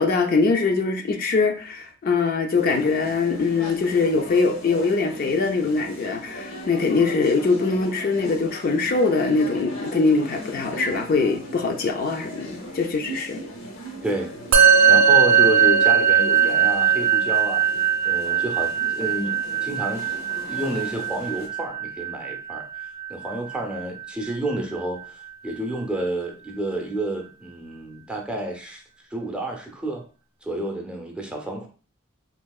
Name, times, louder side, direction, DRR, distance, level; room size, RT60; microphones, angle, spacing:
voice 1, 0.0-13.4, left 4 dB, 45° left, 0.4 m, -22 dB
sound 1, 2.5-21.5, equal, 85° left, 0.8 m, -38 dB
Musical instrument, 14.5-24.1, right 7 dB, 80° right, 0.5 m, -20 dB
voice 2, 14.6-17.7 18.0-20.1 20.4-22.6 23.1-28.8 29.1-30.0 30.4-31.7, right 1 dB, 5° right, 0.5 m, -30 dB
3.6 x 2.7 x 2.3 m
head